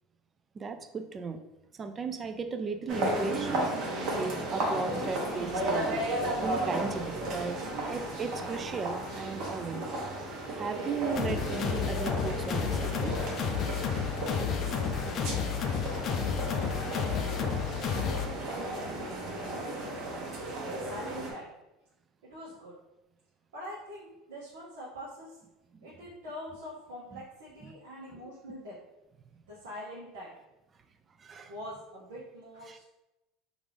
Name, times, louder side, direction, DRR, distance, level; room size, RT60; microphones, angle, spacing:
voice 1, 0.6-1.4 1.8-7.6 7.9-9.8 10.5-13.1 17.1-17.7 27.1-27.2 31.2-31.5 32.7-32.8, right 5 dB, 30° right, 8 dB, 0.4 m, -36 dB
sound 1, 2.9-21.3, right 1 dB, 60° right, 1.0 m, -34 dB
sound 2, 11.1-18.3, left 7 dB, 50° left, 0.4 m, -31 dB
voice 2, 17.9-19.9 20.6-21.5 22.2-22.8 23.5-25.4 25.8-28.8 29.5-30.4 31.5-32.8, equal, 85° right, -7 dB, 0.8 m, -44 dB
3.5 x 2.5 x 3.3 m, 0.95 s
hypercardioid pair, 90°, 0 cm